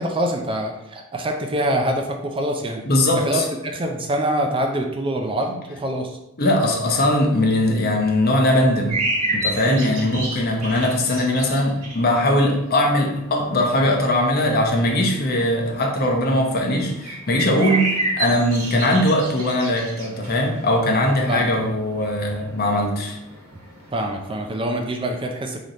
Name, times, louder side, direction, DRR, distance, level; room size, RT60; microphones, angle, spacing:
voice 1, 0.0-2.8 3.2-6.2 9.7-9.9 21.3-21.5 23.9-25.6, right 1 dB, 25° right, 3 dB, 0.4 m, -25 dB
voice 2, 2.9-3.4 6.4-9.0 9.3-23.2, left 1 dB, 45° left, 1 dB, 0.8 m, -20 dB
sound 1, 8.9-24.4, right 2 dB, 90° right, 1.6 m, -32 dB
3.9 x 3.3 x 4.1 m, 0.85 s
head